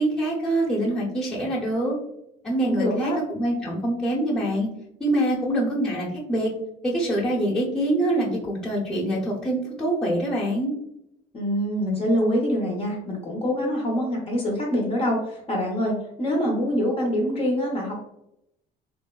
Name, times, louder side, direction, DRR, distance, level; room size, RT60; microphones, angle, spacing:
voice 1, 0.0-2.0 2.4-4.7 5.0-6.5 6.8-10.7, right 1 dB, 5° left, -6 dB, 0.9 m, -25 dB
voice 2, 2.6-3.2 11.3-17.9, equal, 35° left, -2 dB, 0.8 m, -25 dB
3.3 x 2.1 x 2.3 m, 0.80 s
cardioid pair, 110°, 17 cm